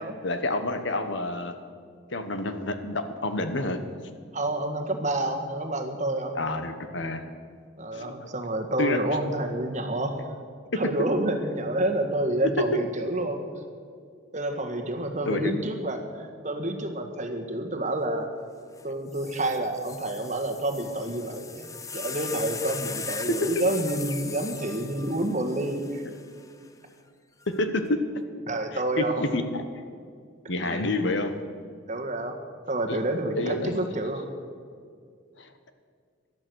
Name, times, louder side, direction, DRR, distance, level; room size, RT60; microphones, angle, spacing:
voice 1, 0.2-1.5 2.1-3.8 6.3-7.2 7.9-8.3 8.8-9.2 10.7-10.8 12.6-12.8 15.3-15.5 23.3-23.6 27.5-28.0 28.7-29.6 30.5-31.3 32.9-33.0 33.3-33.7 35.4-35.5, left 2 dB, 65° left, 8 dB, 1.2 m, -28 dB
voice 2, 4.3-6.3 7.8-10.3 10.7-13.4 14.3-18.3 18.8-26.0 28.5-29.2 30.6-30.9 31.9-32.4 32.7-34.3, right 1 dB, 35° right, 4 dB, 1.6 m, -29 dB
sound 1, 18.8-18.9 19.1-26.5 27.4-27.9, left 5 dB, 15° left, 0.6 m, -39 dB
17.5 x 12.0 x 6.4 m, 2.2 s
head